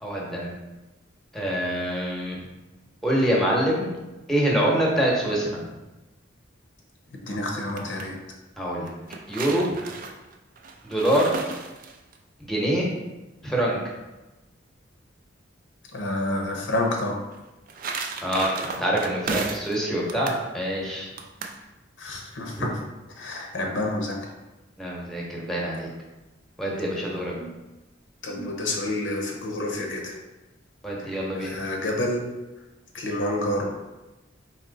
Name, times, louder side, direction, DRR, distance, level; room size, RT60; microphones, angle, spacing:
voice 1, 0.0-0.6 1.3-2.4 3.0-3.9 4.3-5.5 8.6-8.9 9.3-9.7 10.8-11.3 12.4-12.9 13.4-13.8 18.2-21.1 22.6-22.7 24.8-25.9 26.6-27.3 30.8-31.5, right 1 dB, ahead, -4 dB, 0.9 m, -25 dB
voice 2, 7.3-8.1 15.9-17.2 22.0-22.7 23.2-24.2 27.4-27.5 28.2-30.1 31.0-32.3 32.9-33.7, left 1 dB, 70° left, 0 dB, 0.7 m, -28 dB
sound 1, 7.5-8.1 8.9-12.2 17.3-19.8 20.1-20.4 21.2-21.6, right 4 dB, 45° right, 0.4 m, -34 dB
4.2 x 2.9 x 3.9 m, 1.1 s
head